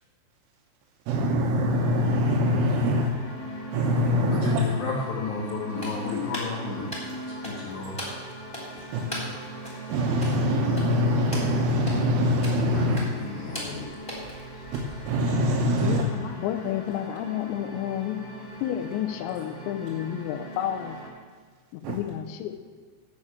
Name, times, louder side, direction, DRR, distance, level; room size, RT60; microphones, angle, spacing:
voice 1, 1.1-3.1 3.7-4.7 8.9-9.1 9.9-13.0 14.7-16.0 21.8-22.0, left 1 dB, 80° right, -1 dB, 3.3 m, -24 dB
sound 1, 1.7-21.1, right 1 dB, 30° left, 2.1 m, -40 dB
voice 2, 4.3-6.9 7.4-8.0 8.8-8.9 12.7-13.9, left 4 dB, 65° left, -4 dB, 1.9 m, -32 dB
sound 2, 5.7-15.5, equal, 10° left, 2.4 m, -41 dB
voice 3, 15.8-21.0 21.7-22.6, left 11 dB, 85° left, 8 dB, 2.6 m, -31 dB
14.0 x 4.9 x 8.5 m, 1.5 s
omnidirectional pair, 5.7 m